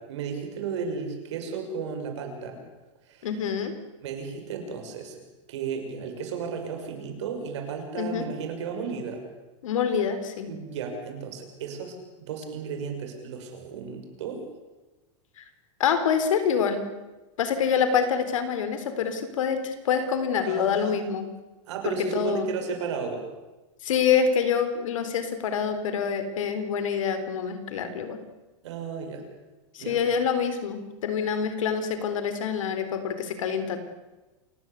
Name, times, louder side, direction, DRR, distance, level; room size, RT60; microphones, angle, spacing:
voice 1, 0.1-2.6 3.1-3.3 4.0-5.2 5.5-9.2 10.5-14.4 20.5-21.0 21.7-23.2 28.6-29.2 29.8-30.0, right 5 dB, 60° right, 4 dB, 6.5 m, -34 dB
voice 2, 3.2-3.7 7.9-8.3 9.6-10.5 15.4-15.5 15.8-16.8 17.4-21.2 21.8-22.5 23.8-28.2 29.7-33.8, left 7 dB, 85° left, 10 dB, 3.9 m, -26 dB
28.0 x 16.5 x 8.3 m, 1.1 s
supercardioid pair, 180°, 16 cm